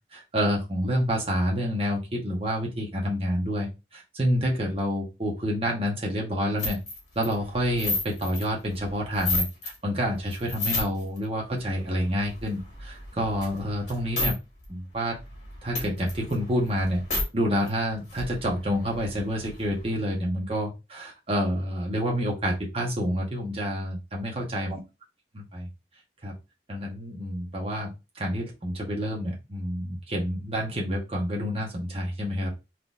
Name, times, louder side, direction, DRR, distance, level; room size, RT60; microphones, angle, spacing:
voice 1, 0.1-6.8 7.1-14.3 14.7-15.2 15.6-17.0 17.3-24.8 25.3-25.7 26.2-26.3 26.7-32.5, equal, 35° right, -1 dB, 1.0 m, -28 dB
sound 1, 6.6-9.7 10.1-11.2 11.6-14.3 14.6-14.7 15.0-17.2 17.7-17.8 18.0-20.0, left 2 dB, 45° left, 1.5 m, -33 dB
3.7 x 2.9 x 2.5 m, 0.26 s
head